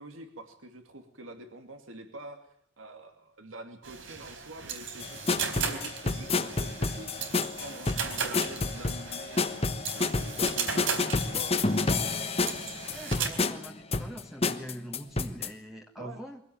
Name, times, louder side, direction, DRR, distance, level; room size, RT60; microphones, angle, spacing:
voice 1, 0.0-2.5 2.8-11.5 16.0-16.2, right 1 dB, 90° right, 7 dB, 2.6 m, -46 dB
sound 1, 3.8-13.3, right 6 dB, 70° right, 4.0 m, -37 dB
sound 2, 5.0-15.5, left 3 dB, 30° left, 1.2 m, -30 dB
voice 2, 12.9-16.4, equal, ahead, 2 dB, 1.5 m, -43 dB
23.5 x 16.5 x 8.9 m, 0.67 s
head